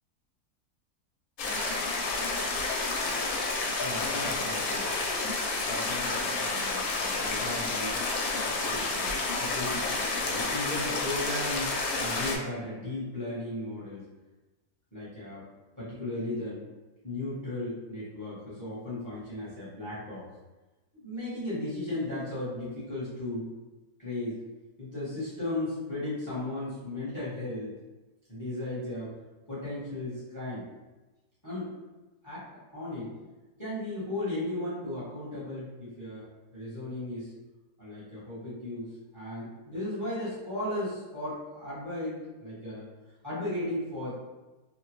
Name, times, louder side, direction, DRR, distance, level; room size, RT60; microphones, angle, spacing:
sound 1, 1.4-12.4, left 3 dB, 75° left, 1.0 m, -30 dB
voice 1, 3.8-4.9 5.7-8.0 8.4-14.1 14.9-15.4 15.8-16.6 17.0-20.3 20.9-23.5 24.0-24.4 24.8-27.7 28.3-29.1 29.5-30.7 31.4-31.7 32.2-33.1 33.6-36.2 36.5-37.3 37.8-42.9 43.2-44.1, left 1 dB, 15° left, -9 dB, 0.7 m, -36 dB
2.9 x 2.1 x 3.0 m, 1.1 s
omnidirectional pair, 1.6 m